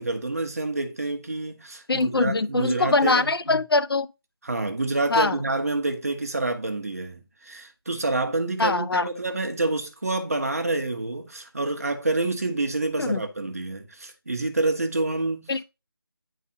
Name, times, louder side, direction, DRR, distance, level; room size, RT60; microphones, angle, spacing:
voice 1, 0.0-3.6 4.4-15.5, right 2 dB, 40° right, 0.8 m, -28 dB
voice 2, 1.9-4.1 5.1-5.4 8.6-9.1 13.0-13.2 15.5-15.6, left 3 dB, 70° left, 0.5 m, -22 dB
9.5 x 4.0 x 2.6 m
figure-of-eight pair, 175°, 13 cm